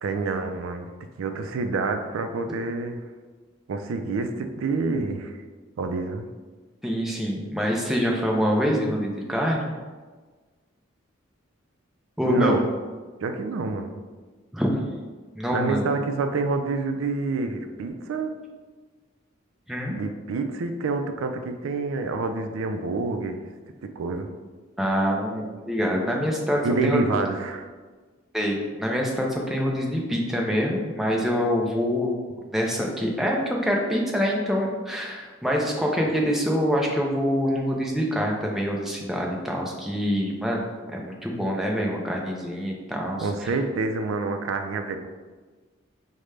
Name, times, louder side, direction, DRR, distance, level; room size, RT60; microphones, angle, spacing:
voice 1, 0.0-0.9 1.2-3.0 3.7-5.4 5.8-6.3 12.2-12.6 13.2-13.9 15.5-18.3 20.0-23.4 24.0-24.3 26.6-27.7 43.2-45.0, right 3 dB, 90° right, 7 dB, 0.4 m, -27 dB
voice 2, 6.8-9.7 12.2-12.6 14.5-14.8 15.3-15.9 19.7-20.0 24.8-27.0 28.3-32.1 32.5-43.5, equal, ahead, -1 dB, 0.4 m, -25 dB
5.0 x 2.1 x 3.2 m, 1.4 s
head